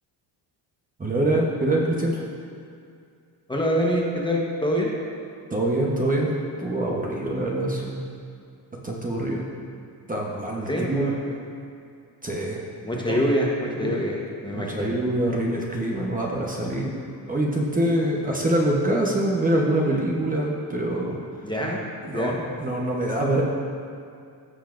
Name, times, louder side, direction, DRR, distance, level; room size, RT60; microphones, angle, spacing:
voice 1, 1.0-2.2 5.5-6.3 6.6-7.9 8.8-9.4 10.1-11.1 12.2-12.6 12.9-13.2 13.8-13.9 14.5-16.9 17.2-21.2 22.0-23.4, right 1 dB, 20° right, -3 dB, 1.0 m, -25 dB
voice 2, 3.5-4.9 10.7-11.4 12.8-14.2 14.4-15.0 21.4-21.8 22.1-22.4, equal, 10° left, -2 dB, 1.1 m, -25 dB
16.0 x 5.6 x 2.5 m, 2.4 s
cardioid pair, 120°, 42 cm